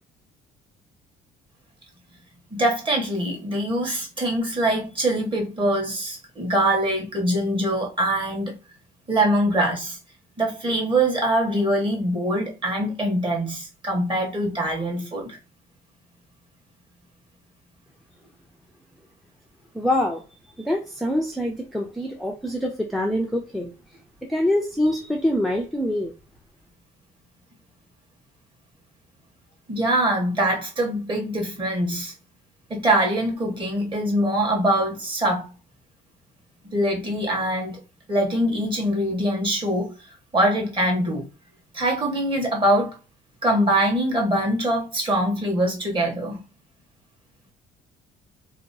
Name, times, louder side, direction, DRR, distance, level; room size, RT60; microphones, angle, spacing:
voice 1, 2.5-8.5 9.1-10.0 10.4-15.4 29.7-32.1 32.7-35.5 36.6-37.8 38.1-39.9 40.3-41.3 41.7-42.9 43.4-46.4, right 1 dB, 30° right, 1.3 m, -23 dB
voice 2, 19.7-20.2 20.6-23.7 24.2-26.1, left 1 dB, ahead, 0.4 m, -25 dB
2.8 x 2.2 x 2.6 m
cardioid pair, 110°, 17 cm